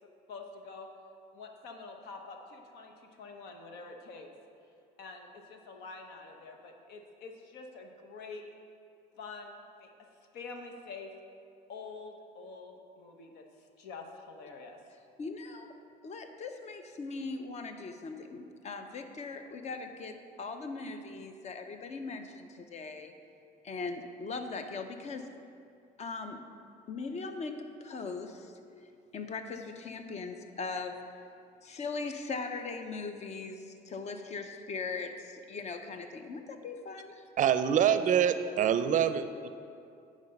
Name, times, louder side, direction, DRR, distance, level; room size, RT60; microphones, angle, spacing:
voice 1, 0.3-0.9 1.3-4.3 5.0-8.4 9.2-9.9 10.3-11.1 11.7-14.8, left 4 dB, 85° left, 3 dB, 1.0 m, -46 dB
voice 2, 15.2-15.7 16.0-23.1 23.6-25.3 26.0-26.4 26.9-28.5 29.1-31.2 31.6-37.2, left 4 dB, 40° left, 7 dB, 0.7 m, -40 dB
voice 3, 37.4-39.5, right 9 dB, 50° right, 11 dB, 0.5 m, -25 dB
9.6 x 5.0 x 5.3 m, 2.4 s
cardioid pair, 110°, 17 cm